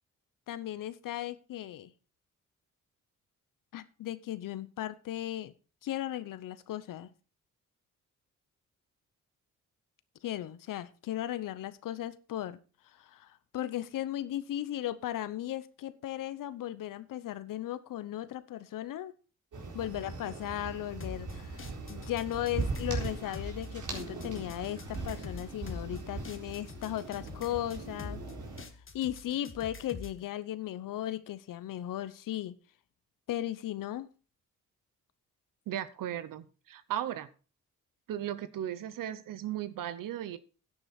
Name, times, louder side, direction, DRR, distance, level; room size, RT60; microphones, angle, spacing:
voice 1, 0.5-1.9 3.7-5.5 5.8-7.1 10.2-12.6 13.0-19.1 19.7-21.6 21.9-28.2 28.9-32.5 33.3-34.1, left 13 dB, 85° left, 15 dB, 0.9 m, -36 dB
sound 1, 19.5-28.6, right 4 dB, 70° right, 4.1 m, -40 dB
sound 2, 21.0-30.2, left 4 dB, 40° left, 1.7 m, -46 dB
voice 2, 35.7-37.3 38.1-40.4, right 11 dB, 85° right, 15 dB, 0.9 m, -36 dB
10.5 x 9.9 x 4.3 m, 0.35 s
cardioid pair, 60°, 32 cm